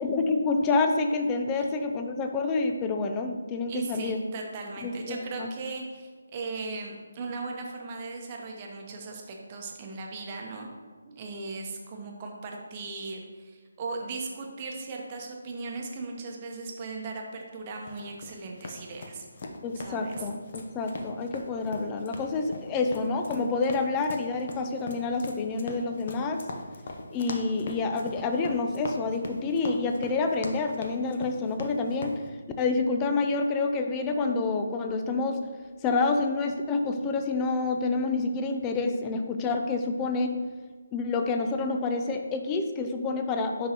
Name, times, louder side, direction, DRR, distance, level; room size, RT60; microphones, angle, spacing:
voice 1, 0.0-4.2 4.8-5.5 19.6-26.4 27.1-32.2 32.6-35.4 35.8-40.4 40.9-43.7, left 3 dB, 15° left, 5 dB, 0.4 m, -28 dB
voice 2, 3.7-10.7 11.1-19.2 19.8-20.2, right 3 dB, 30° right, 0 dB, 0.9 m, -38 dB
sound 1, 17.9-32.2, left 2 dB, 45° left, 0.7 m, -41 dB
10.0 x 3.7 x 2.9 m, 1.5 s
figure-of-eight pair, 155°, 0 cm